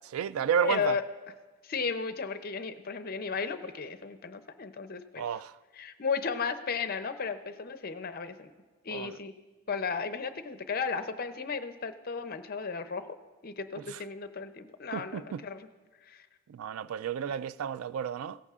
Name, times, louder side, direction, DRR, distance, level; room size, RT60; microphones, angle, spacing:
voice 1, 0.1-1.0 5.2-5.6 8.9-9.2 13.9-14.0 14.9-15.4 16.5-18.4, right 8 dB, 75° right, 0.3 m, -32 dB
voice 2, 0.6-1.0 1.6-5.2 5.8-8.5 8.8-9.3 9.7-13.2 13.4-15.7 16.1-16.2, left 5 dB, 45° left, 0.6 m, -34 dB
17.5 x 15.0 x 2.4 m
head